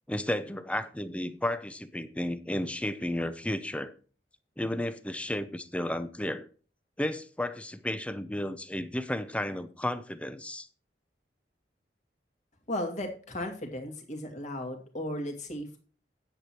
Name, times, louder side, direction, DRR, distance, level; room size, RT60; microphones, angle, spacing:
voice 1, 0.1-3.9 4.6-6.5 7.0-10.7, left 1 dB, 5° left, 0.7 m, -33 dB
voice 2, 12.7-15.8, left 1 dB, 45° left, 2.4 m, -35 dB
9.7 x 8.1 x 4.4 m
head